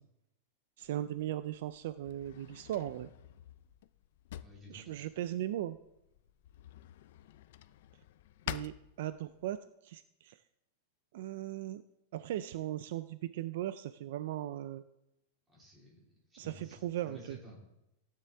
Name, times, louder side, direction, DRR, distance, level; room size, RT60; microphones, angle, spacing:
Drawer open or close, 0.8-9.6, left 13 dB, 50° left, 0.4 m, -49 dB
voice 1, 0.8-3.1 4.7-5.8 8.5-10.4 11.1-11.8 12.1-14.8 16.4-17.4, right 13 dB, 50° right, 13 dB, 0.4 m, -38 dB
voice 2, 4.4-5.1 15.5-17.6, left 1 dB, 10° right, -5 dB, 3.5 m, -54 dB
15.5 x 9.4 x 3.5 m, 0.88 s
supercardioid pair, 175°, 0 cm